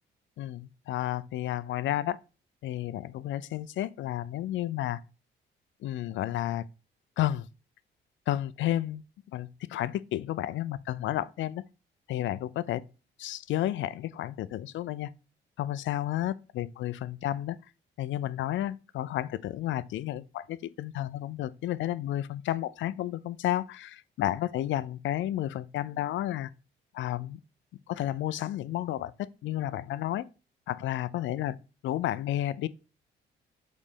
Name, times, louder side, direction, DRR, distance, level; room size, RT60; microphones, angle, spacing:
voice 1, 0.4-2.2 2.6-5.0 5.8-6.6 7.2-7.5 8.3-9.0 9.3-11.6 12.1-12.8 13.2-15.1 15.6-17.6 18.0-26.5 26.9-27.4 27.9-29.1 29.4-30.2 30.7-31.6 31.8-32.7, left 13 dB, 75° left, 0.5 m, -31 dB
5.4 x 4.2 x 5.0 m
cardioid pair, 90°, 20 cm